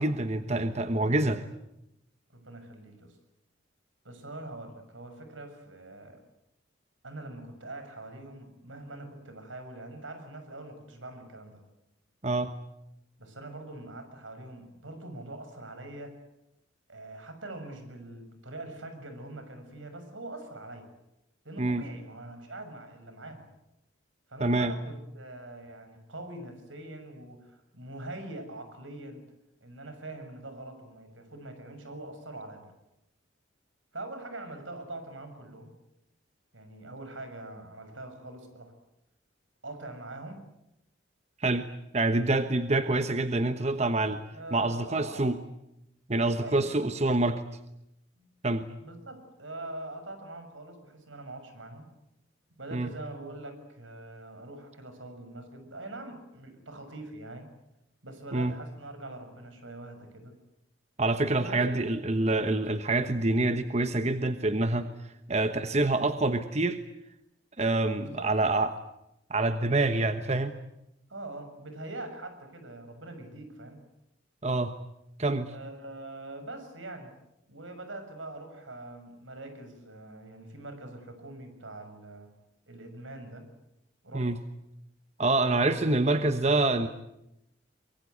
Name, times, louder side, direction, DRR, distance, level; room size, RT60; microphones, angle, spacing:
voice 1, 0.0-1.4 12.2-12.5 21.6-21.8 24.4-24.7 41.4-41.7 41.9-44.2 44.5-45.3 46.1-47.4 48.4-48.7 52.7-52.9 58.3-58.5 61.0-64.9 65.3-66.8 67.6-68.7 69.3-70.5 74.4-74.7 75.2-75.5 84.1-84.4 85.2-86.9, right 2 dB, 35° right, 9 dB, 1.2 m, -26 dB
voice 2, 2.3-3.2 4.0-6.2 7.0-11.6 13.2-16.2 16.9-20.9 21.4-23.5 24.3-29.2 29.6-32.7 33.9-35.7 36.5-38.7 39.6-40.4 44.3-45.3 46.4-46.9 48.1-48.3 48.8-51.9 52.6-57.5 58.0-60.4 61.3-61.8 68.0-68.3 71.1-73.8 75.5-77.1 77.5-82.3 82.7-83.5 84.0-84.3 85.3-86.2, right 2 dB, 85° right, 8 dB, 6.5 m, -43 dB
24.5 x 23.0 x 9.6 m, 0.85 s
head